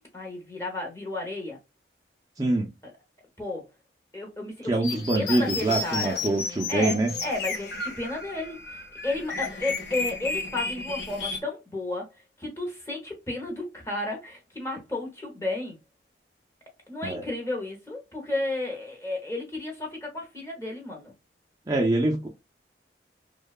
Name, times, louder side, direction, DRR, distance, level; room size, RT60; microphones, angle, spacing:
voice 1, 0.0-1.6 3.4-3.7 4.1-6.2 6.7-15.8 16.9-21.1, left 2 dB, 15° left, 0.7 m, -33 dB
voice 2, 2.4-2.7 4.7-7.1 17.0-17.2 21.7-22.3, right 2 dB, 20° right, 0.3 m, -25 dB
sound 1, 4.8-11.4, left 3 dB, 60° left, 0.6 m, -33 dB
2.7 x 2.2 x 2.3 m
head